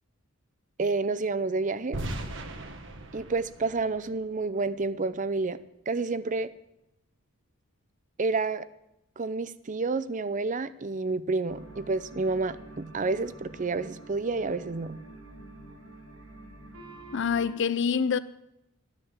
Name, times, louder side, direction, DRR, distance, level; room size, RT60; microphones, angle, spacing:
voice 1, 0.8-2.0 3.1-5.6 5.9-6.5 8.2-8.7 9.2-15.0, right 3 dB, 35° right, 0.5 m, -29 dB
sound 1, 1.9-4.9, right 1 dB, 60° right, 1.5 m, -38 dB
sound 2, 11.5-17.5, right 2 dB, 80° right, 6.4 m, -47 dB
voice 2, 17.1-18.2, left 6 dB, 60° left, 0.5 m, -26 dB
13.0 x 9.8 x 7.3 m
head